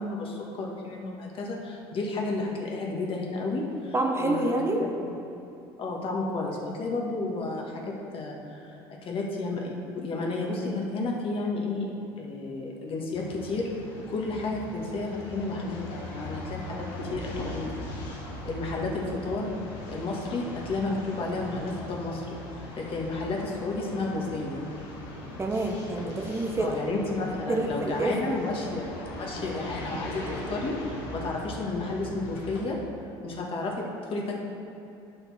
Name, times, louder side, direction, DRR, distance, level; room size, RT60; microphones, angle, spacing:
voice 1, 0.0-4.9 5.8-11.9 12.2-13.7 14.1-17.8 18.4-19.6 19.9-22.2 22.8-24.6 26.6-32.8 33.2-34.4, left 2 dB, 45° left, -1 dB, 1.5 m, -32 dB
voice 2, 3.9-4.8 14.3-14.5 25.4-26.8 27.5-28.1, right 2 dB, 20° right, 1 dB, 0.9 m, -27 dB
sound 1, 13.1-32.7, left 1 dB, 85° left, 1.5 m, -39 dB
9.3 x 5.4 x 4.2 m, 2.8 s
supercardioid pair, 90°, 13 cm